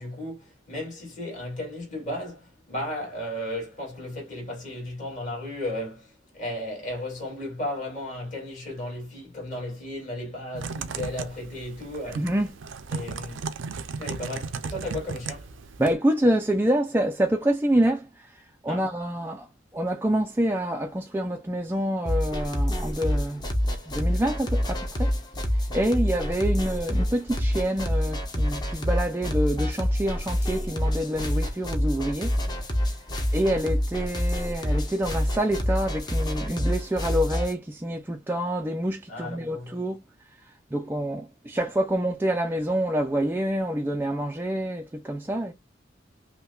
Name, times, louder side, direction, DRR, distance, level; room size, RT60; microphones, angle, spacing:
voice 1, 0.0-12.3 12.9-13.4 14.0-15.5 18.7-18.9 39.1-39.8, left 1 dB, 40° left, 2.3 m, -35 dB
Typing, 10.5-15.9, right 4 dB, 85° right, 0.5 m, -35 dB
voice 2, 12.1-12.5 15.8-18.3 18.6-19.5 19.7-23.4 23.9-25.1 25.7-32.3 33.3-40.0 40.7-45.5, right 1 dB, 10° right, 0.3 m, -27 dB
sound 1, 22.1-37.5, equal, 20° left, 0.8 m, -27 dB
5.5 x 2.1 x 2.3 m
head